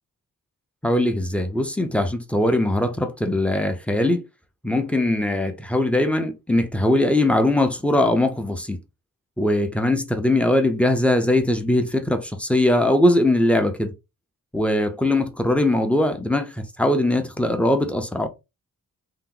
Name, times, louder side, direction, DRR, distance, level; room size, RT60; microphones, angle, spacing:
voice 1, 0.8-4.2 4.6-8.8 9.4-13.9 14.5-18.3, left 1 dB, 5° left, 0.4 m, -21 dB
2.8 x 2.0 x 3.7 m
wide cardioid pair, 100°, 36 cm